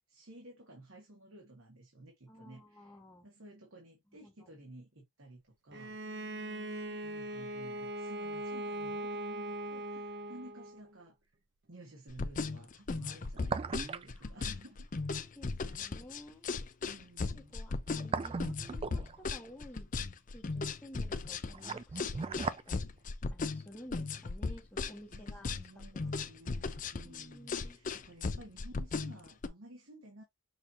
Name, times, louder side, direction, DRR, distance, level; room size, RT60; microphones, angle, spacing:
voice 1, 0.0-2.9 3.2-6.0 7.0-11.3 11.7-14.9 15.7-16.0 16.8-17.5 25.1-30.2, right 1 dB, 70° right, 1.6 m, -54 dB
voice 2, 2.3-3.3 4.2-4.5 6.0-7.0 14.1-14.4 15.2-16.5 17.3-19.9 20.3-26.1 27.0-27.8, equal, 10° left, 1.1 m, -54 dB
Bowed string instrument, 5.7-10.9, right 1 dB, 50° right, 0.7 m, -40 dB
sound 1, 10.0-10.1 13.1-14.2 14.4-14.5 17.7-19.4 21.2-22.7 23.0-23.1, right 4 dB, 25° right, 0.3 m, -37 dB
sound 2, 12.1-29.5, left 4 dB, 35° left, 0.4 m, -36 dB
6.4 x 2.8 x 2.8 m
head